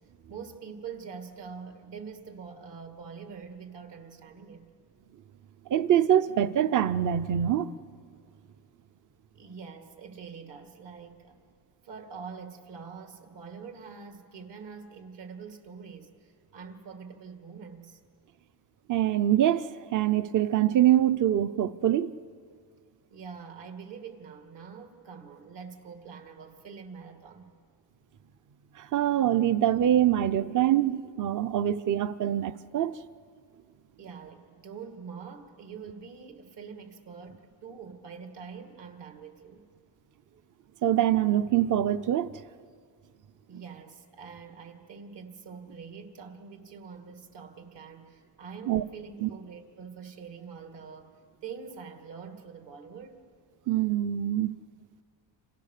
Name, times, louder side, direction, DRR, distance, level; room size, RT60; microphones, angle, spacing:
voice 1, 0.3-4.7 9.3-11.4 11.8-18.0 23.1-27.5 34.0-39.6 43.5-51.2 51.4-53.3, right 6 dB, 65° right, 2.5 m, -45 dB
voice 2, 5.7-7.7 18.9-22.1 28.8-33.0 40.8-42.3 48.7-48.8 49.2-49.3 53.7-54.5, right 11 dB, 45° right, 0.6 m, -24 dB
30.0 x 26.5 x 6.7 m
cardioid pair, 140°, 46 cm